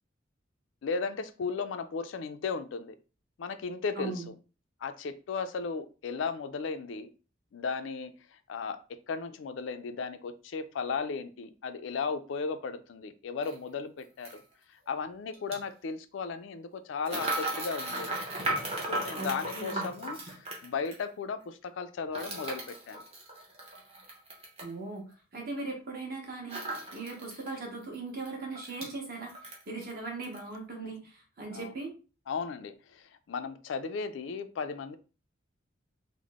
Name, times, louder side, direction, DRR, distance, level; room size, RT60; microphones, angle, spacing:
voice 1, 0.8-3.0 3.4-4.2 4.8-7.1 7.5-8.8 9.1-14.4 14.9-18.2 18.7-23.0 31.5-31.7 32.3-35.0, left 5 dB, 70° left, 9 dB, 0.4 m, -36 dB
voice 2, 4.0-4.3 19.1-19.9 24.6-25.0 25.3-31.9, right 3 dB, 50° right, 0 dB, 1.2 m, -39 dB
sound 1, 13.4-13.5 14.2-14.4 15.3-15.6 17.0-21.0 22.1-24.7 26.5-27.5 27.9-28.0 28.2-28.9 29.3-29.9 30.2-30.4, right 1 dB, 30° right, 0.9 m, -36 dB
3.5 x 2.0 x 3.5 m, 0.34 s
head